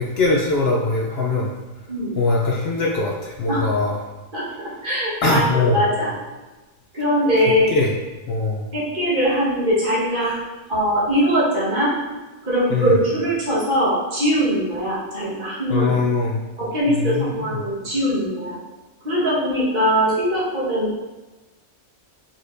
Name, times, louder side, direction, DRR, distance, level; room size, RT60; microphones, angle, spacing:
voice 1, 0.0-1.5 2.1-4.0 5.2-5.8 7.7-7.9 8.3-8.7 12.7-13.0 15.7-16.4 16.9-17.6, left 3 dB, 60° left, -1 dB, 0.7 m, -21 dB
voice 2, 4.3-6.1 6.9-7.7 8.7-10.4 10.7-11.9 12.4-16.0 16.6-18.6 19.0-21.0, equal, 40° right, -8 dB, 1.5 m, -21 dB
4.8 x 4.3 x 2.5 m, 1.2 s
omnidirectional pair, 1.5 m